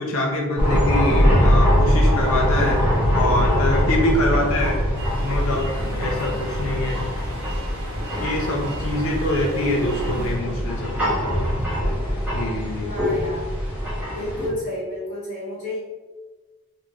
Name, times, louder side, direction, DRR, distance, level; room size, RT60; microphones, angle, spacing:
voice 1, 0.0-2.9 3.1-4.8 5.2-7.0 8.2-11.1 12.3-13.0, left 1 dB, 75° left, 0 dB, 0.5 m, -25 dB
sound 1, 0.6-14.5, equal, 5° right, 0.7 m, -22 dB
sound 2, 4.9-10.3, right 1 dB, 85° right, 0.7 m, -36 dB
voice 2, 12.8-13.4 14.2-15.8, left 1 dB, 50° left, -9 dB, 1.0 m, -31 dB
3.4 x 2.5 x 3.1 m, 1.3 s
head